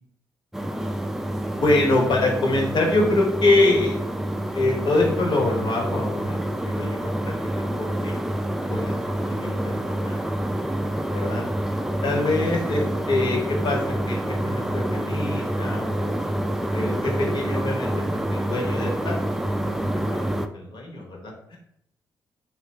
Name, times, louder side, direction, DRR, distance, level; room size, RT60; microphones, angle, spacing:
sound 1, 0.5-20.5, right 1 dB, 5° right, 0.3 m, -27 dB
voice 1, 1.5-4.0 4.5-7.3 7.7-8.1 8.7-9.0 9.3-9.7 10.0-10.2 11.1-11.5 12.0-16.1 16.7-19.2 19.4-20.3 20.5-21.6, left 2 dB, 65° left, -1 dB, 1.0 m, -25 dB
2.8 x 2.4 x 3.1 m, 0.72 s
supercardioid pair, 55°, 8 cm